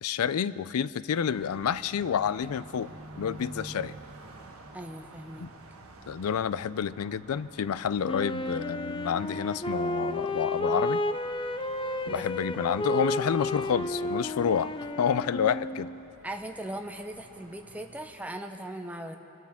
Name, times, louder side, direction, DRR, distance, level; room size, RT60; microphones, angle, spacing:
voice 1, 0.0-3.9 5.4-5.5 6.1-11.0 12.1-14.7 15.0-15.9, left 7 dB, 90° left, 17 dB, 0.4 m, -29 dB
Car passing by, 1.2-18.4, right 2 dB, 80° right, 1.3 m, -50 dB
voice 2, 4.7-5.5 12.0-12.4 16.2-19.2, right 1 dB, 5° right, 4 dB, 0.7 m, -39 dB
Wind instrument woodwind instrument, 8.0-16.0, left 1 dB, 25° left, 0.4 m, -32 dB
25.5 x 13.0 x 3.6 m, 2.8 s
head